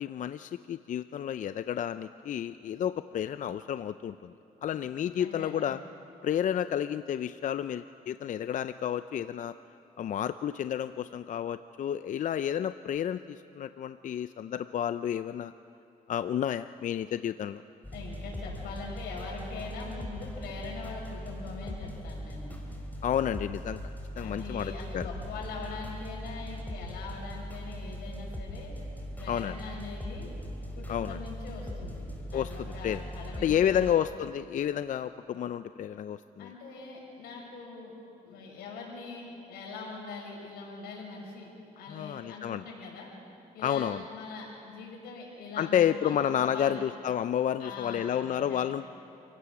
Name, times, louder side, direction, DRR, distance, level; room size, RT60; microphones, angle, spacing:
voice 1, 0.0-4.3 4.6-5.8 6.2-9.5 10.0-15.5 16.1-17.6 23.0-23.8 24.2-25.1 29.3-29.6 30.9-31.2 32.3-32.5 32.8-33.0 33.4-36.5 41.9-42.6 43.6-44.0 45.6-48.8, left 9 dB, 55° left, 12 dB, 0.4 m, -30 dB
voice 2, 5.2-5.7 17.9-22.6 24.1-28.7 29.1-30.3 30.8-33.9 36.4-37.9 38.2-41.5 41.8-43.1 43.5-46.8 47.6-48.9, left 4 dB, 90° left, -2 dB, 5.7 m, -42 dB
sound 1, 17.8-33.9, equal, 10° left, 3.7 m, -40 dB
28.0 x 17.0 x 6.1 m, 2.7 s
cardioid pair, 95°, 16 cm